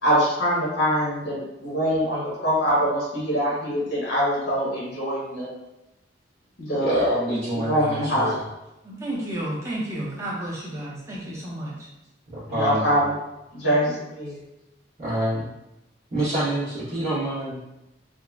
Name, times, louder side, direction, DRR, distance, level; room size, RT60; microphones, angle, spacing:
voice 1, 0.0-5.5 6.6-7.1 7.5-8.3 12.5-13.2 13.5-14.4, equal, 80° left, -6 dB, 1.0 m, -24 dB
voice 2, 6.8-8.4 12.3-13.0 15.0-15.5 16.1-17.7, right 1 dB, 40° right, -14 dB, 1.0 m, -27 dB
voice 3, 8.8-11.8 13.6-13.9, right 1 dB, 15° right, -6 dB, 0.7 m, -32 dB
3.7 x 2.1 x 2.3 m, 0.95 s
head